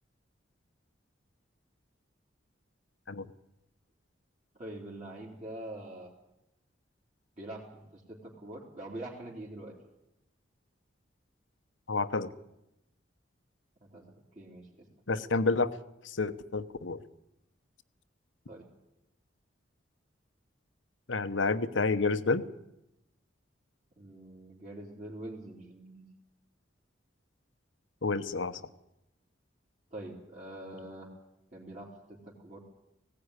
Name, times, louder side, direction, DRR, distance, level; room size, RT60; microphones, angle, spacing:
voice 1, 4.6-6.1 7.4-9.7 13.9-14.8 18.5-18.6 24.0-26.0 29.9-31.1 31.5-32.6, right 1 dB, 40° right, -6 dB, 3.5 m, -44 dB
voice 2, 11.9-12.3 15.1-15.7 16.0-17.0 21.1-22.4 28.0-28.6, left 3 dB, 85° left, 12 dB, 1.0 m, -29 dB
18.5 x 16.5 x 9.8 m, 0.90 s
head